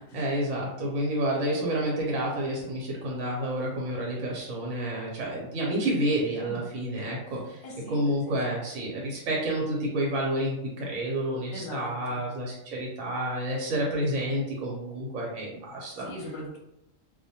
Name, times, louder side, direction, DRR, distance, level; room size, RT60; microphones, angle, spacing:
voice 1, 0.1-7.6 7.9-16.1, right 1 dB, 80° right, -3 dB, 1.0 m, -29 dB
voice 2, 7.3-8.0 8.3-8.4 11.5-12.2 13.7-13.9 16.0-16.6, left 1 dB, 60° left, -1 dB, 0.8 m, -41 dB
2.3 x 2.1 x 2.7 m, 0.86 s
omnidirectional pair, 1.4 m